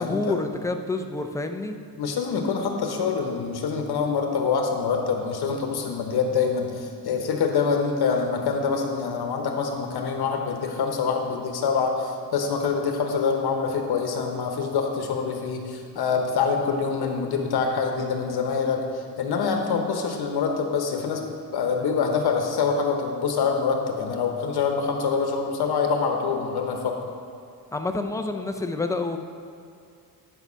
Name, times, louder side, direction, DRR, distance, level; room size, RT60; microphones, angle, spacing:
voice 1, 0.0-1.8 27.7-29.2, left 3 dB, 10° left, 6 dB, 0.4 m, -28 dB
voice 2, 2.0-21.2 21.5-27.0, left 5 dB, 70° left, 3 dB, 1.0 m, -25 dB
11.0 x 5.6 x 5.6 m, 2.4 s
cardioid pair, 135°, 40 cm